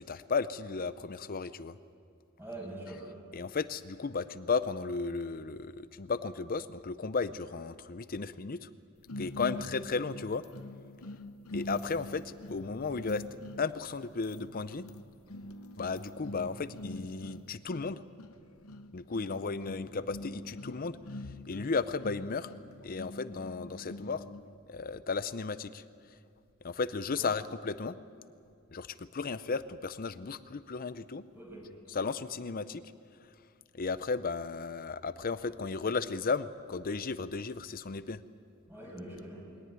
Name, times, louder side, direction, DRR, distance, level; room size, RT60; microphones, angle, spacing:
voice 1, 0.0-1.8 3.3-8.7 9.2-10.4 11.5-13.2 13.6-14.9 15.8-18.0 18.9-21.0 21.5-22.5 22.8-24.2 24.7-25.8 26.6-28.0 28.7-28.9 29.1-31.2 31.9-32.8 33.7-38.2, left 4 dB, 40° left, 14 dB, 0.6 m, -34 dB
voice 2, 2.4-3.0 9.5-9.6 27.1-27.3 31.3-31.6 38.7-39.4, right 1 dB, 10° right, -2 dB, 6.7 m, -44 dB
sound 1, 9.1-24.5, left 1 dB, 75° left, 0.9 m, -45 dB
22.5 x 18.0 x 9.5 m, 2.4 s
head